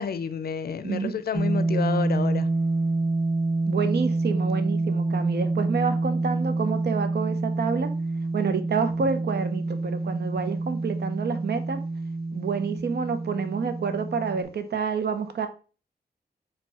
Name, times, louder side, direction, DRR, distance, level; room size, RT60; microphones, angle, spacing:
voice 1, 0.0-2.6, left 7 dB, 70° left, 0.4 m, -30 dB
voice 2, 0.8-1.2 3.7-7.9 8.3-11.8 12.3-15.5, right 5 dB, 85° right, 0.6 m, -28 dB
sound 1, 1.3-14.4, right 2 dB, 10° right, 0.7 m, -27 dB
4.4 x 2.2 x 4.2 m
wide cardioid pair, 135°, 17 cm